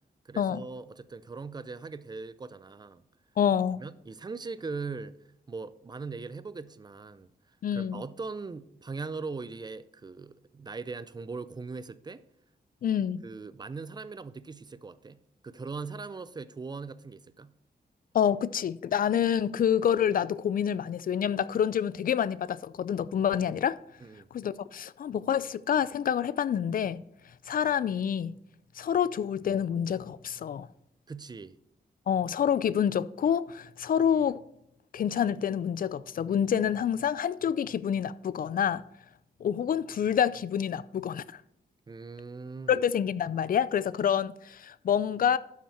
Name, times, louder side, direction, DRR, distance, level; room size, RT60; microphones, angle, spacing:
voice 1, 0.2-3.0 3.8-5.1 5.5-7.3 7.7-12.2 13.2-17.5 24.0-24.3 31.1-31.6 41.9-42.8, right 4 dB, 25° right, 0.4 m, -40 dB
voice 2, 3.4-3.8 7.6-8.0 12.8-13.2 18.1-23.8 24.3-27.0 27.5-28.4 28.8-30.7 32.1-34.4 34.9-38.8 39.4-41.2 42.7-45.4, left 8 dB, 55° left, 0.4 m, -27 dB
12.0 x 5.9 x 4.3 m
wide cardioid pair, 140°, 17 cm